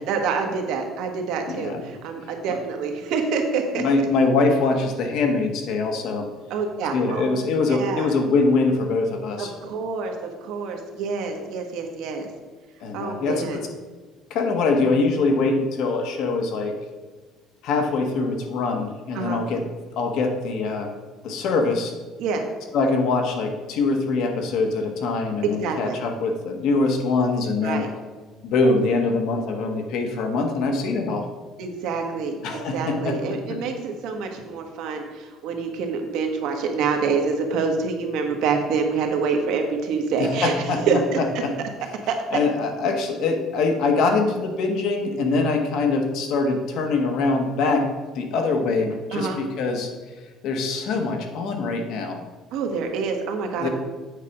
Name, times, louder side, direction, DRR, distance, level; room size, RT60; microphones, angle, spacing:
voice 1, 0.1-3.8 6.5-7.3 7.6-8.1 9.4-12.3 12.9-13.6 19.1-19.4 22.2-22.4 25.4-26.0 27.6-27.9 31.6-41.2 42.1-42.2 49.1-49.4 52.5-53.7, right 5 dB, 60° right, 3 dB, 1.3 m, -26 dB
voice 2, 1.5-1.9 3.7-6.2 6.9-9.5 12.8-13.6 14.3-16.7 17.6-19.6 19.9-20.9 21.2-21.9 22.7-27.9 28.4-31.2 32.4-33.4 40.2-40.8 41.2-41.5 42.3-47.9 48.1-49.9 50.4-52.2 53.6-53.7, left 3 dB, 55° left, 4 dB, 1.2 m, -23 dB
8.3 x 4.9 x 5.8 m, 1.3 s
cardioid pair, 180°, 0 cm